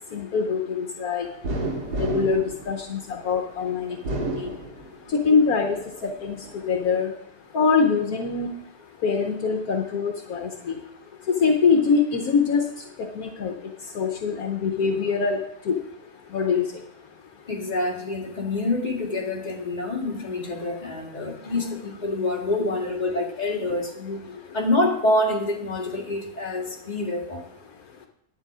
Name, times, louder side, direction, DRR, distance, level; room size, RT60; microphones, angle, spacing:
voice 1, 0.1-1.3 2.0-4.0 4.4-4.5 5.1-5.8 6.0-6.4 6.7-7.1 7.5-8.5 9.0-10.7 11.3-12.6 13.1-13.5 13.9-15.4 15.7-15.8 16.3-16.6, left 5 dB, 70° left, 4 dB, 1.3 m, -23 dB
sound 1, 1.4-3.4 3.9-5.2 5.7-6.6, right 2 dB, 85° right, 2.4 m, -31 dB
voice 2, 17.5-24.2 24.5-27.4, left 2 dB, 25° left, -2 dB, 2.1 m, -26 dB
11.5 x 8.6 x 4.9 m, 0.73 s
omnidirectional pair, 1.7 m